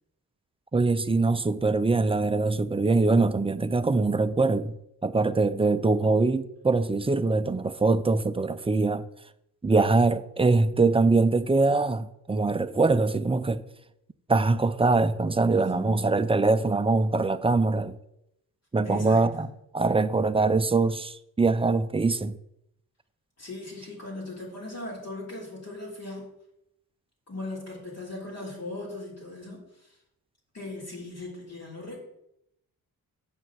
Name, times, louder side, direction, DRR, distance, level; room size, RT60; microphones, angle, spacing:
voice 1, 0.7-4.7 5.0-9.0 9.6-13.6 14.3-18.0 18.7-19.5 19.7-22.3, right 3 dB, 15° right, 0.4 m, -23 dB
voice 2, 15.5-16.1 18.8-19.5 23.4-26.3 27.3-29.9 30.5-32.0, left 2 dB, 45° left, 3.3 m, -39 dB
7.4 x 5.5 x 7.5 m
wide cardioid pair, 150°, 37 cm